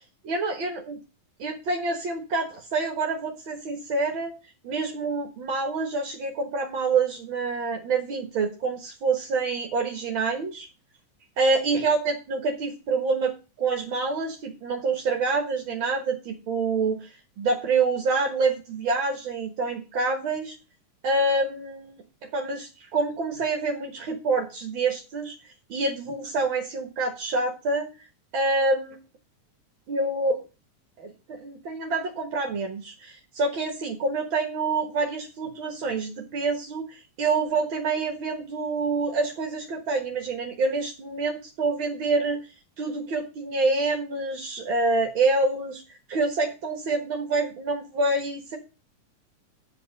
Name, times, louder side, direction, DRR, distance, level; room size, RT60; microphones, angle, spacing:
voice 1, 0.2-1.0 1.4-4.3 4.6-10.7 11.4-17.1 17.4-20.5 21.0-25.3 25.7-27.9 28.3-28.9 29.9-30.4 31.0-42.4 42.8-45.8 46.1-48.6, right 3 dB, 50° right, 2 dB, 1.8 m, -27 dB
9.4 x 5.3 x 7.8 m, 0.31 s
omnidirectional pair, 3.7 m